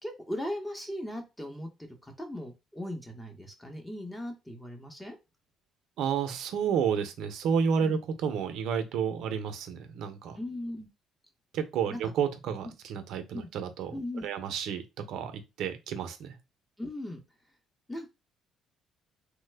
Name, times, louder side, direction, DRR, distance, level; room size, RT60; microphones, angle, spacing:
voice 1, 0.0-5.2 7.8-8.0 10.4-10.9 11.9-12.1 12.6-12.7 13.3-13.5 13.9-14.3 16.8-17.2 17.9-18.1, left 1 dB, 10° left, 0.8 m, -38 dB
voice 2, 6.0-10.4 11.5-13.9 14.2-16.4, right 7 dB, 75° right, 0.6 m, -31 dB
3.1 x 2.1 x 3.3 m
cardioid pair, 100°, 0 cm